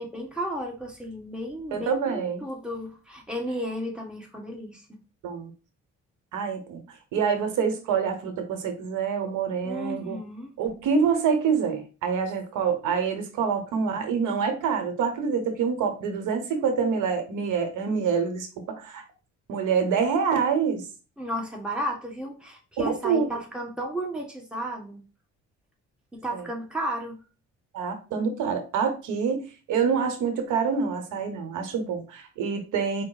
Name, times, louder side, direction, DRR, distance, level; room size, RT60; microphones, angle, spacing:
voice 1, 0.0-5.0 9.6-10.5 21.2-25.0 26.1-27.2, equal, 5° right, -1 dB, 1.4 m, -33 dB
voice 2, 1.7-2.4 5.2-5.5 6.3-6.8 7.1-10.2 10.6-19.0 19.5-20.8 22.8-23.3 26.3-26.4 27.7-33.0, right 6 dB, 90° right, 6 dB, 0.9 m, -26 dB
4.6 x 2.1 x 4.0 m, 0.33 s
cardioid pair, 90°, 30 cm